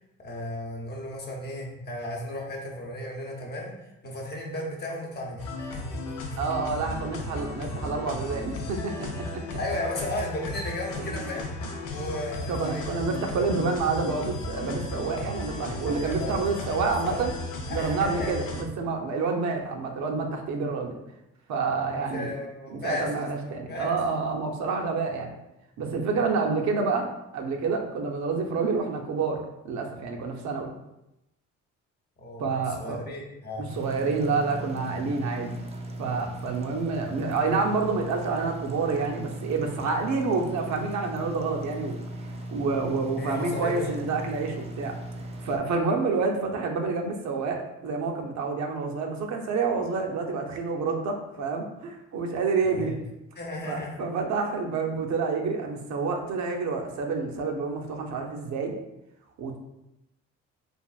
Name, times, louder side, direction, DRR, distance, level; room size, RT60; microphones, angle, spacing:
voice 1, 0.2-6.0 9.6-11.5 11.9-13.0 15.7-17.3 17.7-18.3 21.9-24.0 32.2-33.7 35.0-35.2 43.2-44.0 52.6-53.0 53.4-54.0, left 1 dB, 35° left, -1 dB, 0.7 m, -35 dB
sound 1, 5.4-18.6, left 2 dB, 85° left, 0.5 m, -35 dB
voice 2, 6.4-9.6 11.1-11.3 12.5-17.3 17.7-21.0 21.5-22.3 22.7-25.3 25.8-27.1 27.3-30.7 32.4-33.0 33.7-35.5 36.0-41.9 42.5-45.0 45.4-53.0 53.7-58.7 59.4-59.6, right 4 dB, 65° right, 2 dB, 0.6 m, -28 dB
sound 2, 33.7-45.6, right 1 dB, 20° right, 0.4 m, -38 dB
3.4 x 2.4 x 2.3 m, 0.89 s
cardioid pair, 90°, 30 cm